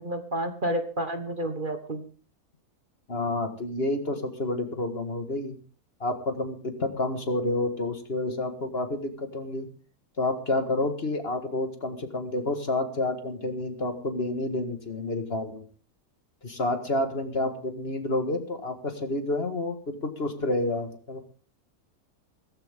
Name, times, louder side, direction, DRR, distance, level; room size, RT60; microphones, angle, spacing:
voice 1, 0.0-2.1, right 1 dB, 35° right, 7 dB, 1.4 m, -30 dB
voice 2, 3.1-5.6 6.0-9.7 10.2-15.7 16.4-21.2, left 2 dB, 40° left, 6 dB, 1.9 m, -29 dB
17.0 x 15.0 x 3.7 m, 0.39 s
omnidirectional pair, 1.6 m